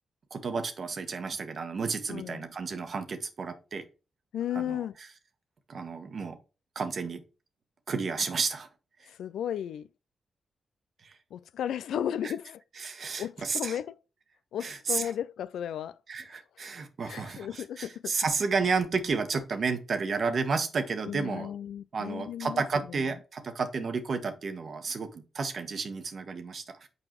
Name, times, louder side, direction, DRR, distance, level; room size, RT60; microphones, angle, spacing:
voice 1, 0.3-3.8 4.5-5.1 5.7-6.4 6.7-7.2 7.9-8.7 11.0-11.2 12.2-12.3 12.8-13.8 14.6-15.1 16.1-21.5 21.9-26.9, right 4 dB, 60° right, 1.3 m, -32 dB
voice 2, 2.1-2.5 4.3-4.9 9.1-9.9 11.3-12.6 13.2-14.0 14.5-16.0 17.0-18.1 21.1-22.6, left 10 dB, 80° left, 0.3 m, -34 dB
6.7 x 4.9 x 3.0 m
supercardioid pair, 40°, 0 cm